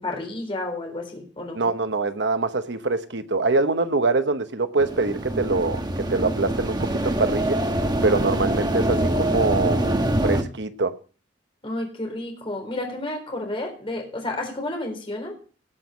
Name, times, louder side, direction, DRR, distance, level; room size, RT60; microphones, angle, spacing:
voice 1, 0.0-1.6 7.0-7.3 11.6-15.3, left 2 dB, 30° left, 4.0 m, -31 dB
voice 2, 1.5-7.6 8.0-9.9 10.2-10.9, right 3 dB, 70° right, 1.0 m, -24 dB
sound 1, 4.8-10.4, right 1 dB, 25° right, 1.1 m, -24 dB
18.5 x 6.2 x 5.1 m
head